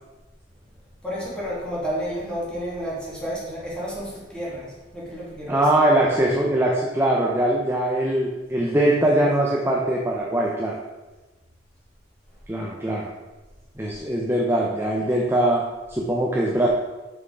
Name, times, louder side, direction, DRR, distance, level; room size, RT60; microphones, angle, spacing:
voice 1, 1.0-5.7, equal, 5° left, -6 dB, 2.4 m, -31 dB
voice 2, 5.5-10.8 12.5-13.1 13.8-16.7, right 1 dB, 15° right, -2 dB, 0.7 m, -22 dB
6.2 x 5.7 x 4.8 m, 1.1 s
head